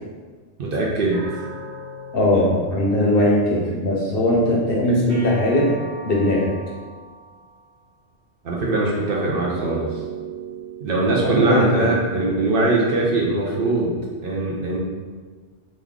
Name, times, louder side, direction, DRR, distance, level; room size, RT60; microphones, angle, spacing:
voice 1, 0.6-1.2 8.4-10.0 10.8-13.9 14.2-14.8, right 2 dB, 60° right, -3 dB, 0.7 m, -21 dB
sound 1, 1.1-3.7 5.1-7.6 9.1-11.7, right 4 dB, 40° right, 1.3 m, -37 dB
voice 2, 2.1-5.7 6.0-6.5 11.2-11.9, left 1 dB, 60° left, -3 dB, 0.8 m, -19 dB
3.1 x 2.3 x 3.5 m, 1.4 s
omnidirectional pair, 1.2 m